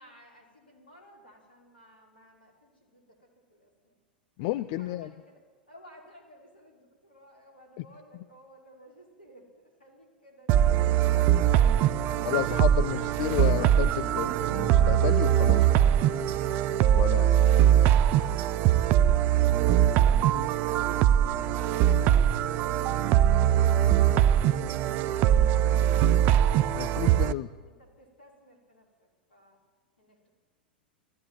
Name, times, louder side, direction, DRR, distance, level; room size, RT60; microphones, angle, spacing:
voice 1, 0.0-3.0 3.5-3.9 4.8-5.4 5.7-11.8 26.9-28.8 29.3-29.6 30.0-30.3, equal, 75° left, 0 dB, 5.8 m, -57 dB
voice 2, 4.4-5.1 7.8-7.9 12.2-15.6 17.0-17.4 26.7-27.5, left 15 dB, 45° left, 12 dB, 0.7 m, -31 dB
sound 1, 10.5-27.3, right 11 dB, 40° right, 0.6 m, -22 dB
19.5 x 15.0 x 9.3 m, 1.5 s
figure-of-eight pair, 90°, 5 cm